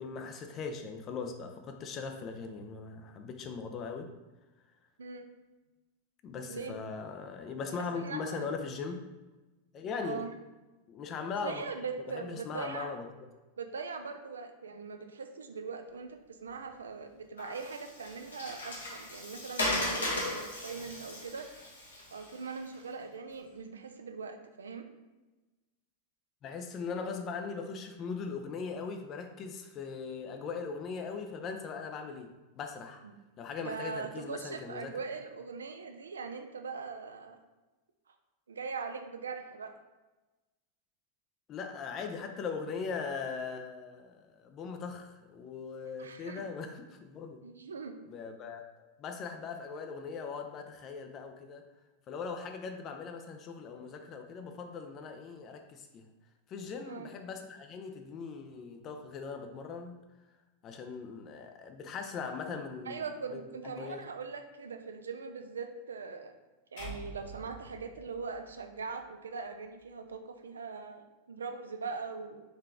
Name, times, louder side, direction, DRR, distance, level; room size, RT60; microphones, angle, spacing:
voice 1, 0.0-4.1 6.2-9.0 9.7-10.3 10.9-11.6 12.1-13.0 26.4-32.3 32.6-33.0 33.4-35.0 41.5-47.4 48.1-48.6 49.0-51.6 52.1-56.0 56.5-60.0 60.6-63.0 63.3-64.0, left 5 dB, 30° left, 5 dB, 0.4 m, -40 dB
voice 2, 5.0-5.3 6.4-6.8 7.7-8.5 10.0-10.3 11.4-12.9 13.6-21.5 22.1-24.9 33.0-33.2 33.6-37.4 38.5-39.7 46.0-46.4 47.4-48.0 56.8-57.1 62.9-66.3 66.7-72.4, right 5 dB, 70° right, 6 dB, 0.4 m, -41 dB
Water, 17.4-22.7, left 1 dB, 70° left, 1.0 m, -36 dB
sound 1, 66.8-69.0, right 2 dB, 55° left, 1.5 m, -47 dB
4.0 x 3.1 x 3.5 m, 1.1 s
figure-of-eight pair, 90°, 0 cm